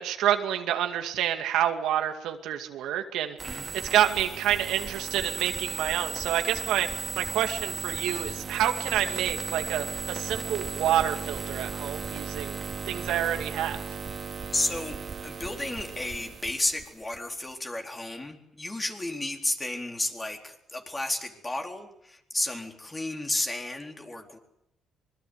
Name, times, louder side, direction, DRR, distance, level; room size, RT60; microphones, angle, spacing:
voice 1, 0.0-12.6 12.9-13.8, right 11 dB, 90° right, 6 dB, 2.2 m, -28 dB
voice 2, 3.4-3.8 14.5-24.4, left 2 dB, 20° left, 3 dB, 4.1 m, -32 dB
sound 1, 3.4-17.2, right 5 dB, 45° right, 2.6 m, -36 dB
25.0 x 21.5 x 8.1 m, 0.79 s
cardioid pair, 90°, 0 cm